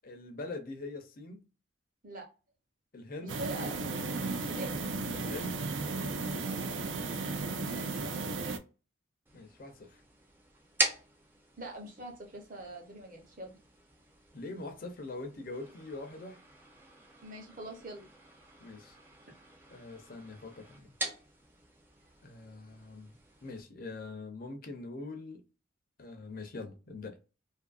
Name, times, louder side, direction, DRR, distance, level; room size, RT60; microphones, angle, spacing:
voice 1, 0.0-1.4 2.9-3.4 5.1-5.7 9.3-10.0 14.3-16.4 18.6-19.0 19.7-20.9 22.2-25.4 26.0-27.2, left 2 dB, 45° left, 0.5 m, -43 dB
voice 2, 3.2-4.0 4.5-4.7 7.7-8.4 11.6-13.6 17.2-18.0, right 1 dB, 45° right, 0.8 m, -44 dB
sound 1, 3.3-8.6, right 3 dB, 70° right, 0.4 m, -35 dB
sound 2, 9.3-23.6, right 1 dB, 10° right, 0.5 m, -42 dB
2.6 x 2.4 x 2.3 m
head